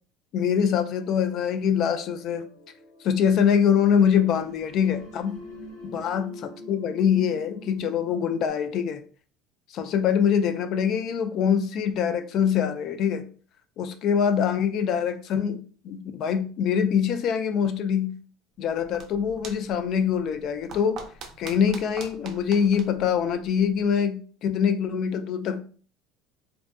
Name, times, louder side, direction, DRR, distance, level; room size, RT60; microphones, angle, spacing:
voice 1, 0.3-2.5 3.0-5.4 5.9-9.0 9.7-13.3 13.8-18.1 18.6-21.0 21.4-25.6, left 7 dB, 50° left, 0.3 m, -24 dB
sound 1, 0.9-8.5, left 2 dB, 90° left, 1.0 m, -45 dB
sound 2, 18.6-24.0, right 5 dB, 45° right, 0.5 m, -45 dB
2.6 x 2.1 x 2.3 m
cardioid pair, 140°, 0 cm